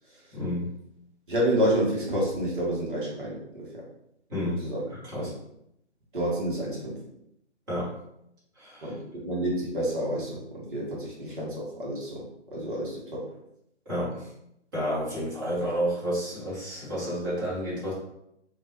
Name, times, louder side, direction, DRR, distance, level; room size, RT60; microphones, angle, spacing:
voice 1, 0.3-0.7 4.3-5.3 7.7-8.0 8.5-9.0 13.8-14.3 14.7-17.9, equal, 15° right, -10 dB, 1.2 m, -31 dB
voice 2, 1.3-3.8 4.6-4.8 5.1-5.3 6.1-7.0 8.8-13.3, right 1 dB, 45° right, -4 dB, 1.1 m, -29 dB
3.3 x 2.4 x 2.7 m, 0.79 s
figure-of-eight pair, 145°, 35 cm